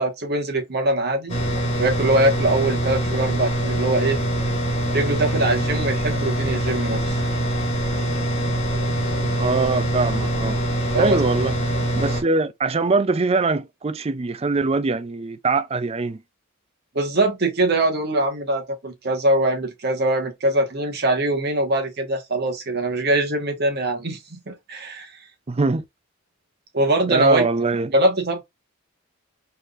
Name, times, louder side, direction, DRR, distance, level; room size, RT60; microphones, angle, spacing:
voice 1, 0.0-1.4 1.8-4.2 4.9-7.2 10.9-11.2 16.9-25.1 26.7-27.5 27.9-28.4, right 1 dB, 50° right, 1.4 m, -22 dB
sound 1, 1.3-12.2, right 1 dB, 25° left, 1.5 m, -24 dB
voice 2, 9.4-10.6 11.0-11.5 12.0-16.2 25.5-25.8 27.1-27.9, right 3 dB, 30° right, 0.4 m, -22 dB
4.8 x 3.3 x 2.5 m
head